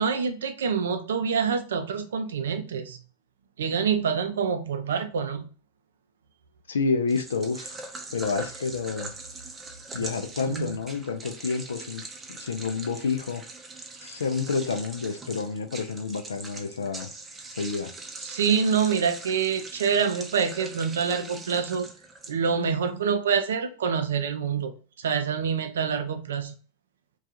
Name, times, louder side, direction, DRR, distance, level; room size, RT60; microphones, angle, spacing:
voice 1, 0.0-3.0 3.6-5.5 10.5-10.7 18.2-21.9 22.3-24.7 25.0-26.5, right 6 dB, 75° right, 0.4 m, -26 dB
voice 2, 6.7-7.8 8.1-9.1 9.9-13.4 14.0-17.1 17.5-17.9, left 4 dB, 80° left, 0.4 m, -29 dB
sound 1, 7.1-22.7, right 3 dB, 20° right, 0.6 m, -41 dB
2.3 x 2.3 x 2.8 m
hypercardioid pair, 90°, 0 cm